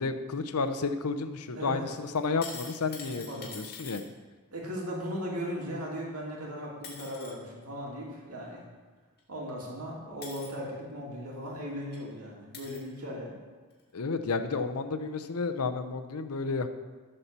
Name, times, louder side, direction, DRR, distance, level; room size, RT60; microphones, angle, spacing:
voice 1, 0.0-3.3 3.5-4.0 13.9-16.7, left 4 dB, 80° left, 8 dB, 0.7 m, -31 dB
voice 2, 1.5-1.9 3.0-3.5 4.5-8.6 9.3-13.4, equal, 75° right, -3 dB, 2.5 m, -37 dB
sound 1, 2.2-4.0 6.3-6.4 6.8-7.3 9.2-9.3 10.2-10.5 11.5-11.6 11.9-12.0 12.5-12.9 13.7-13.8, left 5 dB, 45° left, 2.0 m, -44 dB
12.5 x 4.4 x 6.8 m, 1.4 s
head